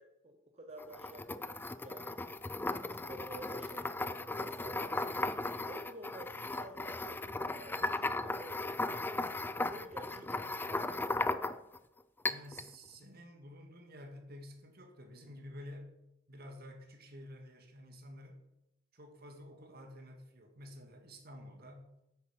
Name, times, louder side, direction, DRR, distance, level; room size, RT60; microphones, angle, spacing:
voice 1, 0.0-2.2 2.7-5.2 5.6-8.8 9.5-11.6, right 1 dB, 35° right, 3 dB, 0.9 m, -51 dB
sound 1, 0.8-11.8 12.2-12.7, left 2 dB, 10° left, 0.3 m, -37 dB
voice 2, 12.3-16.0 16.3-18.4 18.9-21.9, equal, 55° right, 4 dB, 1.8 m, -51 dB
9.2 x 8.6 x 5.2 m, 0.88 s
head